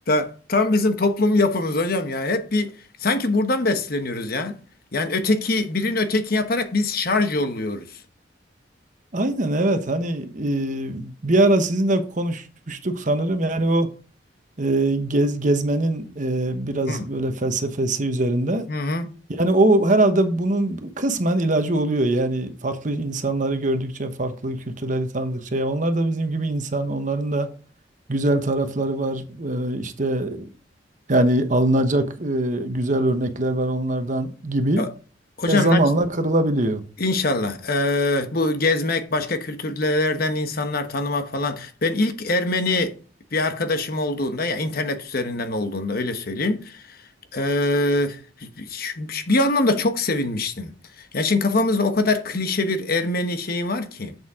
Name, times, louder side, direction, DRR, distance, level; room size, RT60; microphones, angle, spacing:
voice 1, 0.1-4.6 4.9-8.0 16.9-17.1 18.7-19.1 34.8-34.9 35.4-35.8 37.0-43.0 43.3-47.0 47.3-54.2, left 2 dB, 55° left, 1.1 m, -23 dB
voice 2, 9.1-13.9 14.6-18.6 19.3-27.5 28.1-30.5 31.1-34.8 35.5-36.8, right 1 dB, 45° right, 1.1 m, -22 dB
7.9 x 7.1 x 3.6 m
head